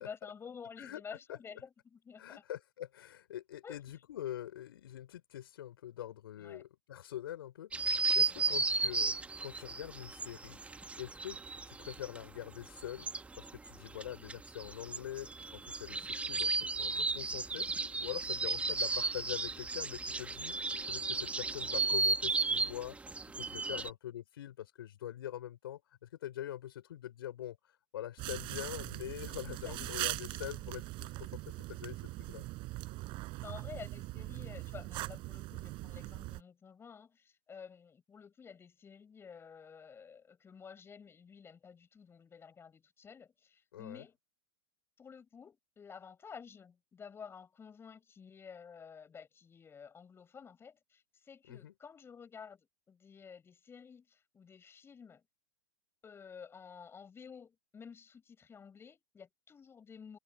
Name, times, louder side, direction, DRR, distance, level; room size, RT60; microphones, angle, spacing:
voice 1, 0.0-2.4 3.6-3.8 6.4-6.6 8.3-8.5 18.3-18.5 23.6-23.9 29.5-30.0 33.4-44.2 45.0-55.2 56.0-60.2, left 6 dB, 20° left, 7.9 m, -51 dB
voice 2, 2.2-9.1 9.4-11.4 11.7-13.1 13.4-20.5 20.9-23.0 23.3-27.6 27.9-32.5 43.7-44.0 51.5-51.7, left 12 dB, 65° left, 5.6 m, -44 dB
sound 1, 7.7-12.3 12.5-23.9, right 3 dB, 10° right, 1.8 m, -34 dB
sound 2, 28.2-36.4, right 21 dB, 40° right, 5.6 m, -41 dB
hypercardioid pair, 105°, 13 cm